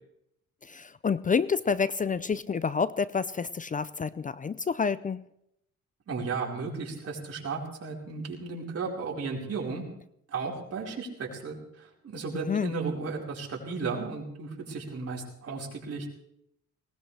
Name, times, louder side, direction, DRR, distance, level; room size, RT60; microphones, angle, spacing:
voice 1, 0.6-5.2 12.3-12.7, left 5 dB, 25° left, 17 dB, 0.5 m, -28 dB
voice 2, 6.1-9.8 10.3-16.1, right 4 dB, 50° right, -2 dB, 4.7 m, -34 dB
19.5 x 18.5 x 3.4 m, 0.76 s
cardioid pair, 90°, 30 cm